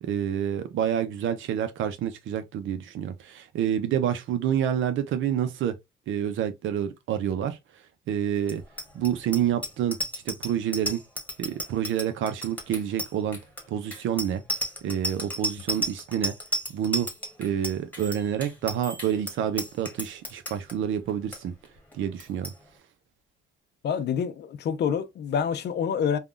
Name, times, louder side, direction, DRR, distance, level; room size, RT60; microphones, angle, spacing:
voice 1, 0.0-5.7 6.1-7.6 8.1-8.6 8.9-10.0 10.3-11.0 11.4-13.4 13.7-14.4 14.8-16.3 16.7-17.1 17.4-21.5 21.9-22.5, right 9 dB, 75° right, 0.6 m, -28 dB
Bicycle bell, 8.4-20.7 21.1-21.4 21.6-21.9 22.2-22.5, equal, 10° left, 1.2 m, -33 dB
voice 2, 23.8-26.2, left 7 dB, 60° left, 0.5 m, -27 dB
3.5 x 2.3 x 2.4 m
cardioid pair, 90°, 20 cm